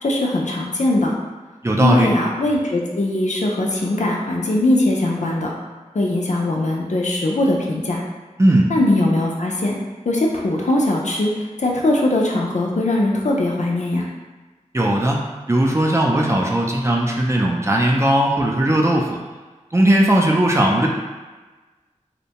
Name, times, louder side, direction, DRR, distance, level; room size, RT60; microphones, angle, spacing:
voice 1, 0.0-1.1 1.8-5.5 5.9-8.0 8.7-9.7 10.1-11.3 11.6-14.1, left 2 dB, 65° left, -1 dB, 0.4 m, -20 dB
voice 2, 1.6-2.1 8.4-8.7 14.7-19.1 19.7-20.9, right 1 dB, 20° right, -1 dB, 0.4 m, -17 dB
2.6 x 2.1 x 2.8 m, 1.3 s
wide cardioid pair, 40°, 13 cm